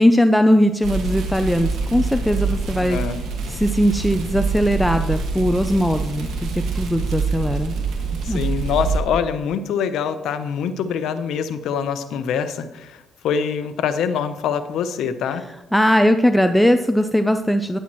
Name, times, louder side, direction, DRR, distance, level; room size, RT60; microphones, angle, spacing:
voice 1, 0.0-3.0 3.5-6.5 6.7-7.8 8.3-8.4 15.7-17.8, equal, 5° left, 7 dB, 0.5 m, -19 dB
sound 1, 0.8-9.0, right 4 dB, 80° right, 1.8 m, -25 dB
voice 2, 2.8-3.2 8.2-15.4, left 7 dB, 80° left, 10 dB, 0.8 m, -24 dB
11.5 x 10.0 x 3.1 m, 0.95 s
cardioid pair, 90°, 0 cm